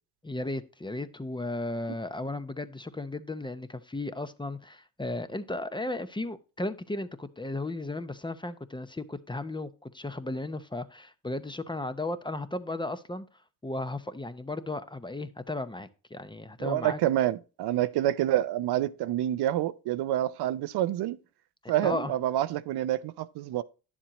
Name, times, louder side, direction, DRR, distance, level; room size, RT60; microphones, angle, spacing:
voice 1, 0.2-13.3 13.6-17.0 21.8-22.1, left 2 dB, 10° left, 0.7 m, -35 dB
voice 2, 16.6-21.2 21.7-23.6, right 13 dB, 75° right, 0.6 m, -27 dB
10.0 x 7.3 x 3.0 m
cardioid pair, 80°, 39 cm